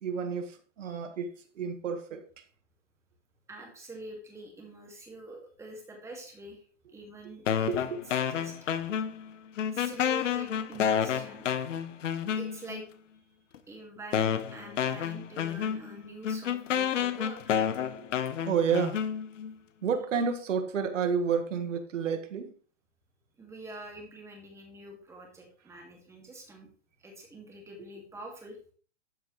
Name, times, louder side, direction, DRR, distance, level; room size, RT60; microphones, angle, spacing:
voice 1, 0.0-2.4 7.7-8.0 17.9-18.1 18.4-19.0 19.8-22.5, right 6 dB, 80° right, 1.6 m, -30 dB
voice 2, 3.5-6.6 6.9-7.7 8.3-8.9 9.7-11.5 12.4-12.8 13.7-17.6 23.4-26.7 27.0-28.6, right 1 dB, 5° right, 2.0 m, -46 dB
sound 1, 7.5-9.3 9.6-12.8 13.5-13.6 14.1-19.5, left 8 dB, 80° left, 1.1 m, -30 dB
12.0 x 5.2 x 3.1 m
hypercardioid pair, 150°, 37 cm